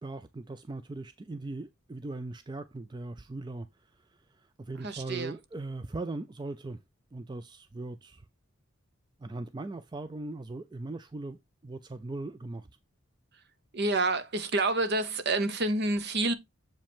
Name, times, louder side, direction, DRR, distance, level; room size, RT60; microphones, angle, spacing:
voice 1, 0.0-6.8 7.1-8.3 9.2-11.4 11.6-12.7, right 2 dB, 20° right, 0.3 m, -39 dB
voice 2, 4.8-5.4 13.7-16.3, right 2 dB, 50° right, 0.9 m, -28 dB
7.4 x 5.1 x 3.5 m
head